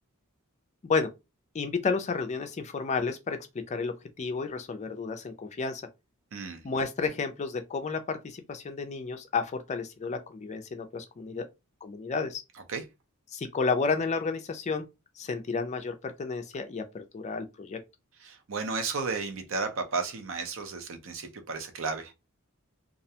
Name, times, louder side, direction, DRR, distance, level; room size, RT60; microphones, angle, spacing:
voice 1, 1.5-3.4 3.7-5.8 6.6-11.5 11.8-12.4 13.3-14.8 15.2-17.8, left 4 dB, 30° left, 0.3 m, -31 dB
voice 2, 6.3-6.6 12.7-12.8 18.2-22.1, right 4 dB, 60° right, 0.6 m, -33 dB
2.4 x 2.1 x 2.7 m
head